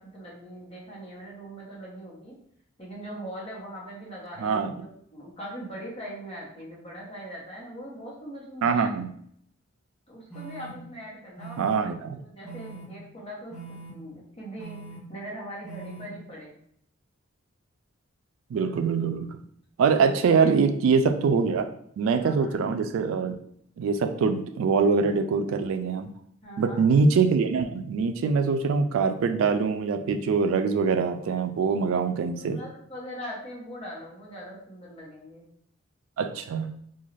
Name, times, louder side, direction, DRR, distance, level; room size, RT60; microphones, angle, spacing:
voice 1, 0.0-2.3 2.8-9.1 10.1-11.9 12.1-14.8 15.1-16.5 19.9-20.4 22.2-22.6 26.4-26.8 32.2-35.4, equal, 30° left, -5 dB, 0.9 m, -41 dB
voice 2, 4.4-4.7 8.6-9.1 11.6-12.2 18.5-19.4 19.8-21.6 22.0-23.4 23.8-26.1 26.6-32.6 36.2-36.7, right 5 dB, 85° right, 8 dB, 0.3 m, -24 dB
sound 1, 10.3-10.7 11.4-11.8 12.4-12.8 13.5-13.9 14.6-15.0 15.6-16.0, right 4 dB, ahead, 0.8 m, -42 dB
2.5 x 2.3 x 3.1 m, 0.68 s
head